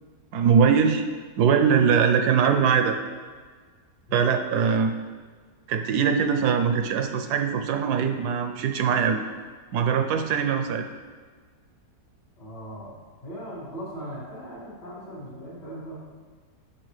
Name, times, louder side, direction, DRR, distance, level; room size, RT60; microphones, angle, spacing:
voice 1, 0.3-1.0 1.4-3.0 4.1-4.9 5.7-9.2 9.7-10.9, right 6 dB, 75° right, 6 dB, 1.1 m, -22 dB
voice 2, 12.4-16.1, equal, 75° left, -15 dB, 3.2 m, -39 dB
8.7 x 5.9 x 3.2 m, 1.5 s
omnidirectional pair, 1.8 m